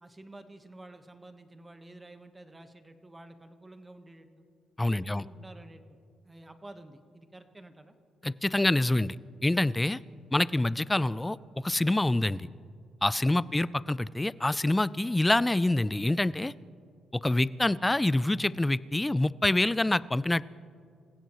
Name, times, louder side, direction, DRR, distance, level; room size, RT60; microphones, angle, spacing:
voice 1, 0.0-4.4 4.9-6.0 6.2-8.0, right 2 dB, 15° right, 8 dB, 1.3 m, -50 dB
voice 2, 4.8-5.2 8.2-9.2 9.4-10.0 10.3-12.5 13.0-16.5 17.2-20.4, left 2 dB, 10° left, 19 dB, 0.4 m, -26 dB
27.5 x 16.0 x 3.1 m, 2.3 s
cardioid pair, 90°, 0 cm